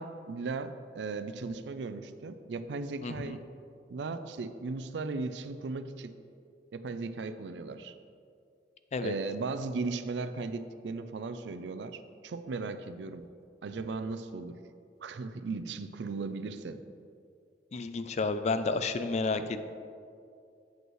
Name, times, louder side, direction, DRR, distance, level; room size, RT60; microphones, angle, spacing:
voice 1, 0.0-3.4 3.9-6.1 6.7-7.9 9.0-13.2 13.6-14.6 15.0-16.8 19.3-19.4, right 3 dB, 80° right, 11 dB, 0.4 m, -37 dB
voice 2, 3.0-3.4 8.9-9.1 17.7-19.6, left 3 dB, 40° left, 10 dB, 0.4 m, -31 dB
7.9 x 7.9 x 3.1 m, 2.4 s
head